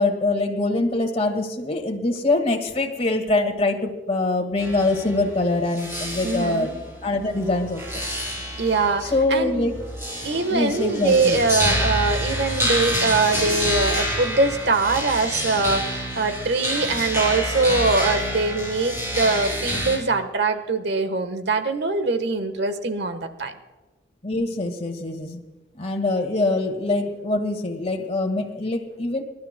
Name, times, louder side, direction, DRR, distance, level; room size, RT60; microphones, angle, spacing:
voice 1, 0.0-6.7 7.0-8.0 9.0-9.8 10.5-11.4 24.2-25.4 25.7-29.2, left 2 dB, 35° left, 3 dB, 1.8 m, -24 dB
sound 1, 4.6-20.0, equal, 15° right, 4.6 m, -28 dB
voice 2, 6.2-6.7 8.6-9.7 10.2-23.5, right 3 dB, 65° right, 9 dB, 1.3 m, -23 dB
26.5 x 12.5 x 2.2 m, 1.2 s
head